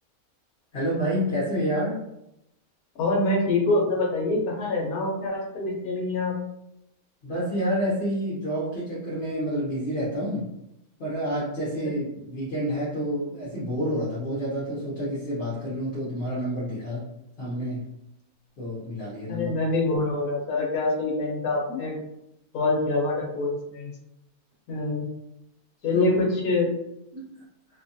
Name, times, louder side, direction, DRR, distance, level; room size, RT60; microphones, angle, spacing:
voice 1, 0.7-2.0 7.2-10.5 11.0-17.1 17.4-17.9 18.6-19.5 25.9-26.1 27.1-27.3, equal, 50° left, -8 dB, 0.9 m, -28 dB
voice 2, 3.0-6.4 19.3-22.0 22.5-23.9 24.7-25.1 25.8-26.7, left 2 dB, 80° left, -1 dB, 1.2 m, -25 dB
2.7 x 2.3 x 2.6 m, 0.85 s
omnidirectional pair, 1.6 m